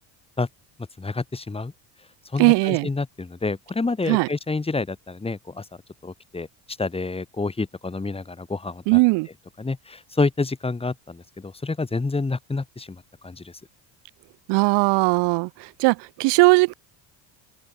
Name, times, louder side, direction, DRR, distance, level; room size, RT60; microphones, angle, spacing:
voice 1, 1.0-1.7 2.3-5.7 6.0-9.0 9.6-13.6, left 3 dB, 15° left, 4.2 m, -28 dB
voice 2, 2.4-2.9 4.1-4.3 8.9-9.3 14.5-16.7, right 25 dB, 80° right, 1.8 m, -19 dB
cardioid pair, 125°, 41 cm